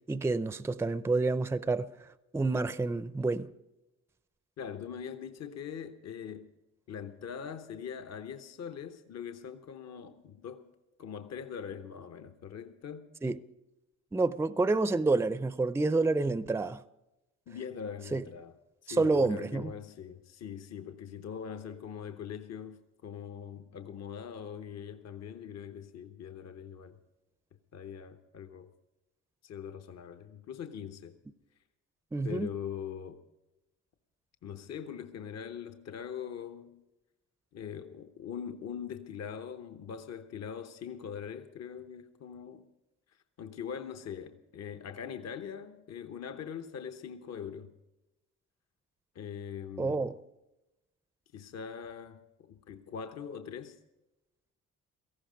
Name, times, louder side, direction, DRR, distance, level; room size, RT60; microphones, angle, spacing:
voice 1, 0.1-1.9 2.3-3.5 13.2-13.4 14.1-16.8 18.1-18.2 18.9-19.7 32.1-32.5 49.8-50.2, right 3 dB, 10° right, 0.5 m, -28 dB
voice 2, 4.6-6.5 6.9-10.7 11.0-13.1 17.5-18.5 18.8-27.0 27.7-28.7 29.4-31.2 32.2-33.2 34.4-36.8 37.5-42.7 43.4-47.7 49.1-50.0 51.3-53.8, left 7 dB, 60° left, 1.0 m, -42 dB
17.5 x 14.5 x 5.2 m
cardioid pair, 90°, 30 cm